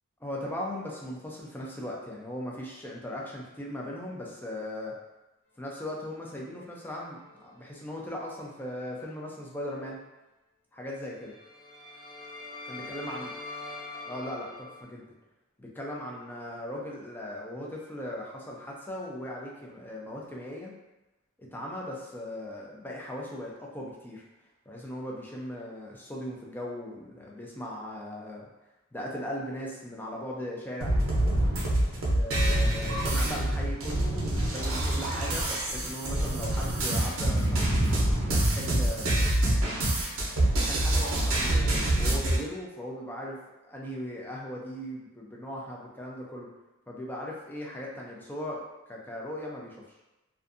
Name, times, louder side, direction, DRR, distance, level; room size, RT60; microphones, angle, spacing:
voice 1, 0.2-4.9 5.6-10.0 10.7-11.3 12.7-13.3 14.1-15.1 15.6-20.7 21.4-24.3 24.7-28.5 28.9-30.9 31.9-39.3 40.3-43.4 43.7-46.5 46.9-49.8, left 1 dB, 10° left, -3 dB, 0.4 m, -38 dB
sound 1, 6.5-8.3 8.7-8.9 11.1-14.8, left 3 dB, 55° left, 1.0 m, -44 dB
sound 2, 30.8-42.4, right 1 dB, 65° right, 0.6 m, -26 dB
2.5 x 2.3 x 2.5 m, 1.0 s
head